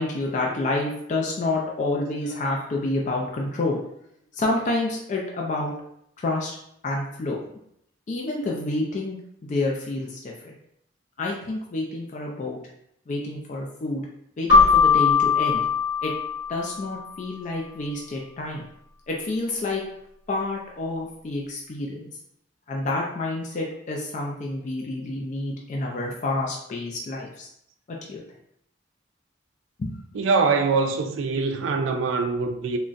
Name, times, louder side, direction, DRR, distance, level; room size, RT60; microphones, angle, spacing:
voice 1, 0.0-3.8 4.3-5.7 6.2-6.5 6.8-7.4 8.1-10.6 11.2-12.6 13.1-14.1 14.4-15.7 16.0-16.1 16.5-18.6 19.1-19.8 20.3-22.1 22.7-27.5 27.9-28.2 29.8-30.0, left 2 dB, 40° left, 0.4 m, -28 dB
Keyboard (musical), 14.5-17.0, left 5 dB, 85° left, 1.5 m, -20 dB
voice 2, 30.1-32.8, right 4 dB, 80° right, 0.4 m, -23 dB
3.7 x 2.1 x 2.4 m
head